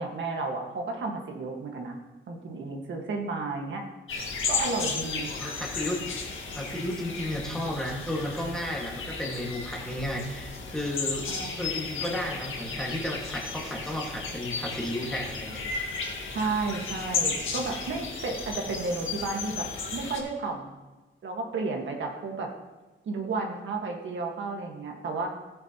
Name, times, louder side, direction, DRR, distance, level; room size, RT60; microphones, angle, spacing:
voice 1, 0.0-2.0 2.3-3.8 4.5-5.3 11.3-11.6 16.3-20.8 21.2-22.5 23.1-25.3, right 3 dB, 70° right, 1 dB, 1.7 m, -32 dB
sound 1, 4.1-20.2, left 4 dB, 85° left, 1.8 m, -34 dB
voice 2, 5.3-6.0 6.5-11.3 11.6-15.6, left 1 dB, 5° left, -2 dB, 1.8 m, -33 dB
16.5 x 8.7 x 3.0 m, 1.1 s
wide cardioid pair, 165°, 20 cm